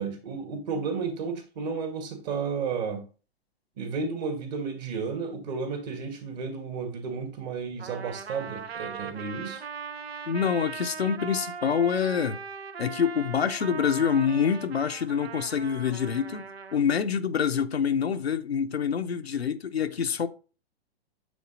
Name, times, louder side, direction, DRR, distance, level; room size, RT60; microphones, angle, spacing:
voice 1, 0.0-3.1 3.8-9.6, right 5 dB, 40° right, 1.9 m, -32 dB
Trumpet, 7.8-16.8, right 6 dB, 75° right, 0.7 m, -39 dB
voice 2, 10.3-12.4 12.8-16.4 16.7-20.3, left 7 dB, 75° left, 0.7 m, -26 dB
8.4 x 3.9 x 3.9 m
figure-of-eight pair, 105°, 31 cm